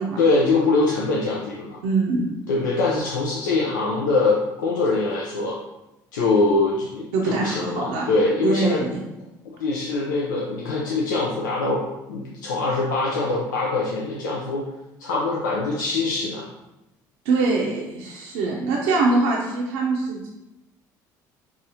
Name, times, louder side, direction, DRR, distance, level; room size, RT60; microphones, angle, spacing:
voice 1, 0.2-1.8 2.5-5.6 6.1-8.8 9.6-11.8 12.1-14.6 15.0-16.4, left 3 dB, 90° left, -4 dB, 0.4 m, -23 dB
voice 2, 1.8-2.3 7.1-8.1 8.4-9.0 17.3-20.4, right 3 dB, 75° right, -2 dB, 0.5 m, -23 dB
4.0 x 2.4 x 2.7 m, 0.94 s
hypercardioid pair, 65°, 10 cm